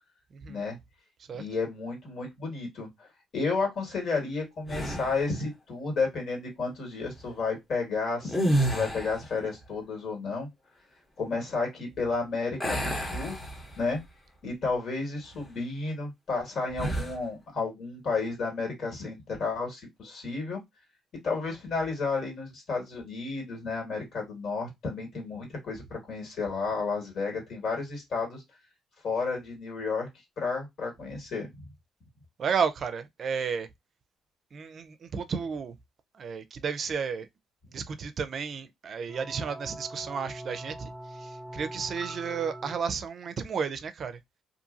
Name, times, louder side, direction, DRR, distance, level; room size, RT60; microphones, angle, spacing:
voice 1, 0.3-0.6 1.3-1.5 32.4-33.7 34.5-35.7 36.2-37.3 37.7-44.2, right 6 dB, 55° right, 0.4 m, -32 dB
voice 2, 1.4-3.1 3.3-10.5 11.2-13.4 13.8-14.0 14.4-20.6 21.2-28.4 29.0-30.1 30.4-31.5, left 4 dB, 65° left, 1.8 m, -32 dB
sound 1, 4.7-5.3 8.2-9.3 12.6-14.0 14.5-14.7 16.7-17.2, right 1 dB, 20° left, 0.9 m, -29 dB
sound 2, 39.1-42.8, right 1 dB, 5° left, 0.5 m, -42 dB
2.7 x 2.6 x 2.5 m
cardioid pair, 90°, 0 cm